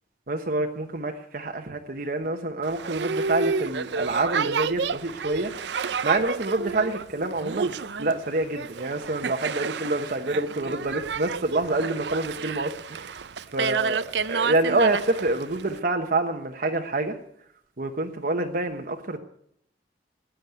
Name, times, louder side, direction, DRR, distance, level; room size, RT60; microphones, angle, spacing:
voice 1, 0.3-5.5 6.0-13.2 13.5-14.0 14.3-17.2 17.8-19.2, right 2 dB, 55° right, 4 dB, 1.1 m, -27 dB
Boat Water vehicle, 2.6-15.8, right 5 dB, 75° right, 0.6 m, -30 dB
15.0 x 10.5 x 9.3 m, 0.70 s
head